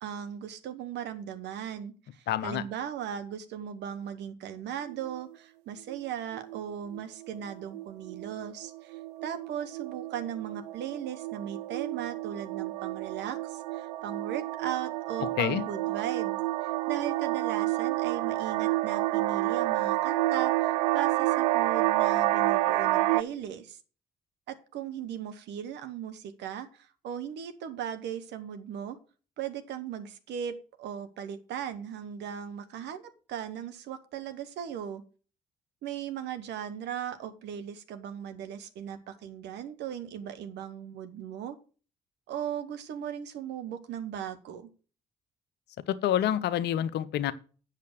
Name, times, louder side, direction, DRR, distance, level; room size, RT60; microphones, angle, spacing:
voice 1, 0.0-23.8 24.5-29.0 29.4-33.0 33.3-35.0 35.8-41.6 42.3-44.7, right 9 dB, 60° right, 1.2 m, -38 dB
voice 2, 2.3-2.6 15.4-15.6 45.9-47.3, left 11 dB, 55° left, 0.7 m, -27 dB
sound 1, 4.9-5.3 5.9-6.1 6.3-6.6 6.9-23.2, right 16 dB, 75° right, 0.4 m, -29 dB
8.3 x 6.6 x 6.3 m
figure-of-eight pair, 45°, 20 cm